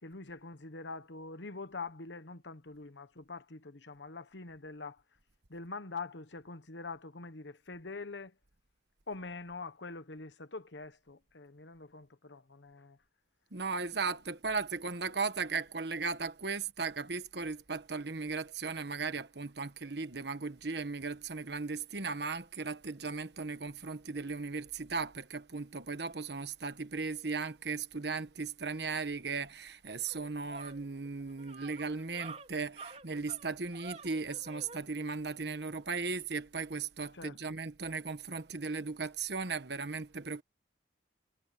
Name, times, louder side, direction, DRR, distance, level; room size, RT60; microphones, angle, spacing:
voice 1, 0.0-5.0 5.5-8.4 9.1-13.0 37.1-37.6, left 3 dB, 70° left, 1.2 m, -44 dB
voice 2, 13.5-40.4, right 4 dB, 65° right, 1.2 m, -37 dB
sound 1, 29.8-34.8, right 4 dB, 35° right, 3.8 m, -49 dB
head